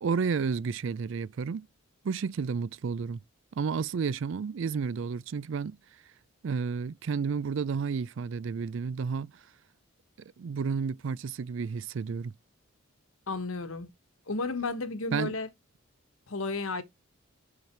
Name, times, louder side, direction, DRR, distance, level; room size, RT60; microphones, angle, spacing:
voice 1, 0.0-1.7 2.0-3.2 3.6-5.8 6.4-9.3 10.4-12.3 15.1-15.4, right 5 dB, 60° right, 0.4 m, -31 dB
voice 2, 13.3-13.9 14.3-15.5 16.3-16.8, left 3 dB, 75° left, 1.1 m, -32 dB
5.9 x 5.7 x 4.4 m
head